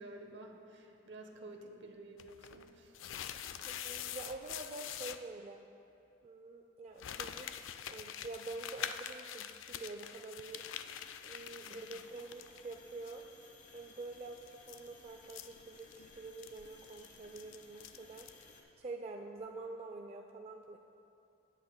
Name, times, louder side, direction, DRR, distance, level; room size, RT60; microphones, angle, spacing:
voice 1, 0.0-3.0 11.6-11.9, right 2 dB, 65° right, 4 dB, 0.9 m, -51 dB
sound 1, 2.2-5.2 7.0-12.8 13.0-13.1 14.4-18.4, left 9 dB, 70° left, 0.3 m, -45 dB
voice 2, 3.7-5.6 6.2-10.6 11.2-13.2 13.7-18.3 18.8-20.8, right 3 dB, 35° right, 3 dB, 0.3 m, -47 dB
sound 2, 10.4-18.6, left 3 dB, 40° left, 1.0 m, -59 dB
17.0 x 8.0 x 2.2 m, 2.7 s
head